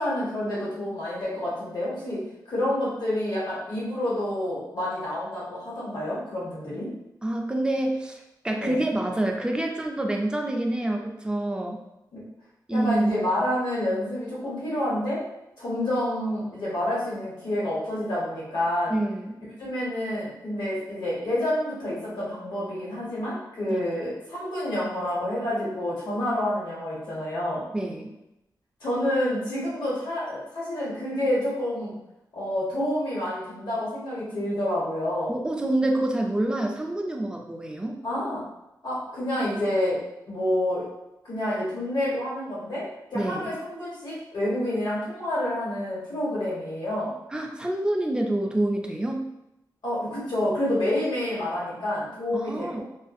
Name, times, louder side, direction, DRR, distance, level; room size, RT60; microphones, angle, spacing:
voice 1, 0.0-2.2 2.5-6.9 8.6-8.8 12.1-12.2 12.7-15.2 15.6-18.9 19.6-27.6 28.8-31.9 32.3-35.3 38.0-38.4 38.8-40.0 40.3-40.8 41.2-47.1 49.8-52.8, left 1 dB, 75° left, -7 dB, 1.2 m, -28 dB
voice 2, 7.2-11.8 12.7-13.1 18.9-19.4 23.7-23.8 27.7-28.1 35.3-38.0 43.1-43.5 47.3-49.2 52.3-52.8, right 1 dB, 10° right, 1 dB, 0.3 m, -27 dB
2.4 x 2.3 x 2.5 m, 0.89 s
wide cardioid pair, 130°, 8 cm